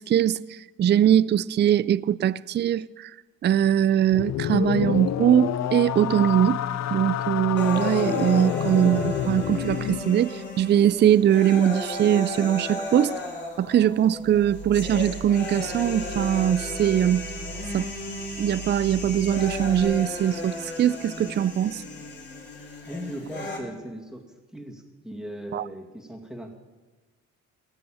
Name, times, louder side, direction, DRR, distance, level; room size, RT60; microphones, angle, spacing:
voice 1, 0.0-3.1 3.4-6.6 6.9-13.1 13.6-17.3 17.7-17.9 18.4-21.8 25.5-25.6, right 10 dB, 35° right, 0.4 m, -22 dB
sound 1, 4.1-10.0, left 11 dB, 60° left, 0.6 m, -28 dB
sound 2, 7.6-23.6, left 2 dB, 35° left, 3.9 m, -34 dB
sound 3, 14.2-19.8, right 5 dB, 70° right, 2.0 m, -40 dB
voice 2, 22.5-24.2 24.5-26.5, equal, ahead, 2.4 m, -38 dB
18.5 x 6.9 x 8.9 m
cardioid pair, 90°, 30 cm